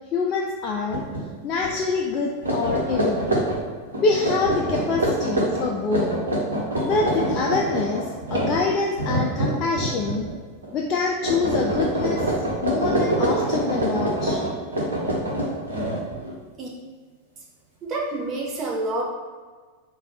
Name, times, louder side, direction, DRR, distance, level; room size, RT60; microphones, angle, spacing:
voice 1, 0.1-1.0 1.4-3.3 4.0-6.1 6.8-10.3 10.7-12.2 12.6-14.4, left 4 dB, 35° left, -1 dB, 0.4 m, -25 dB
sound 1, 0.9-1.2 1.6-1.8 2.3-10.3 10.6-11.0 11.2-16.3, right 1 dB, 75° right, 1.0 m, -25 dB
voice 2, 17.8-19.1, right 2 dB, 30° right, -2 dB, 0.9 m, -28 dB
4.0 x 2.3 x 4.0 m, 1.4 s
figure-of-eight pair, 90°, 0 cm